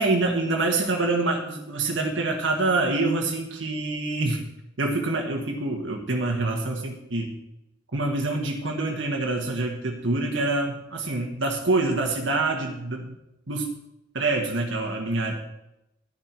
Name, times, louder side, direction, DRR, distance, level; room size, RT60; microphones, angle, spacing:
voice 1, 0.0-4.4 4.8-7.3 7.9-13.2 13.5-13.8 14.1-15.3, right 2 dB, 75° right, 0 dB, 1.6 m, -26 dB
11.5 x 10.5 x 4.6 m, 0.88 s
head